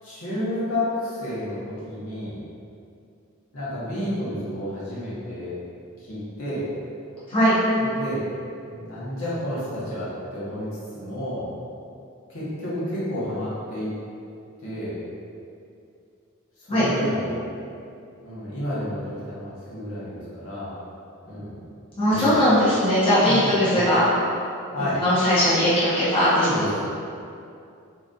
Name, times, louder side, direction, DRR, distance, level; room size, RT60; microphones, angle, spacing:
voice 1, 0.0-2.4 3.5-5.5 6.1-6.6 7.8-8.3 8.7-10.7 10.9-11.5 12.3-13.9 14.6-14.9 16.6-17.4 18.2-20.7 21.2-21.5 22.1-22.4 23.2-23.8 24.7-25.0 26.3-26.9, left 1 dB, 65° left, -10 dB, 1.1 m, -30 dB
voice 2, 22.0-24.0 25.0-26.5, equal, 25° left, -13 dB, 0.9 m, -19 dB
3.8 x 3.0 x 2.5 m, 2.5 s
head